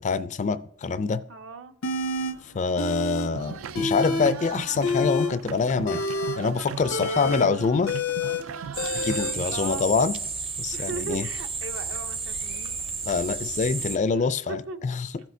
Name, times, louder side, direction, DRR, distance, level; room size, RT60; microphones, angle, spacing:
voice 1, 0.0-1.2 2.5-6.0 6.4-7.9 9.0-10.1 10.6-11.3 13.0-15.1, left 4 dB, 35° left, 0.4 m, -25 dB
voice 2, 1.3-1.7 6.9-7.7 9.5-9.9 10.7-12.7 14.2-14.8, right 5 dB, 65° right, 0.8 m, -38 dB
sound 1, 1.8-2.3 2.8-3.3 3.6-4.3 4.7-9.3, left 3 dB, 80° left, 0.7 m, -28 dB
sound 2, 3.3-9.5, right 7 dB, 85° right, 0.4 m, -37 dB
sound 3, 8.7-14.0, right 4 dB, 30° right, 0.6 m, -32 dB
15.0 x 6.2 x 2.7 m
head